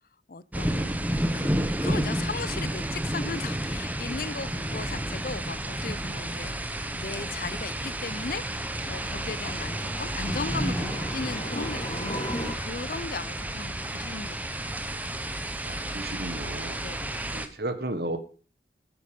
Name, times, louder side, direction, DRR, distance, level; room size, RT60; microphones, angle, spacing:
voice 1, 0.3-0.9 1.3-8.4 8.9-14.7 16.8-17.3, left 4 dB, 50° left, 0.5 m, -37 dB
sound 1, 0.5-17.5, right 1 dB, 10° right, 1.0 m, -31 dB
sound 2, 4.3-12.5, equal, 25° left, 3.4 m, -40 dB
voice 2, 15.6-16.8 17.3-18.2, right 2 dB, 60° right, 1.5 m, -33 dB
10.5 x 10.5 x 5.2 m
head